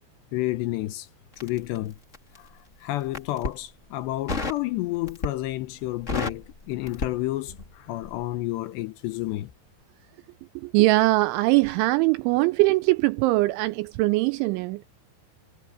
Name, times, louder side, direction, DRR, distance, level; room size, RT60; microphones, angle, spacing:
voice 1, 0.3-1.1 1.4-1.9 2.8-9.5, left 17 dB, 75° left, 2.7 m, -30 dB
Crackle, 1.3-2.5 3.0-3.6 4.3-4.7 5.1-5.5 5.8-7.8 8.0-8.2, left 3 dB, 30° left, 1.3 m, -32 dB
voice 2, 10.6-14.8, right 20 dB, 85° right, 2.8 m, -21 dB
omnidirectional pair, 5.7 m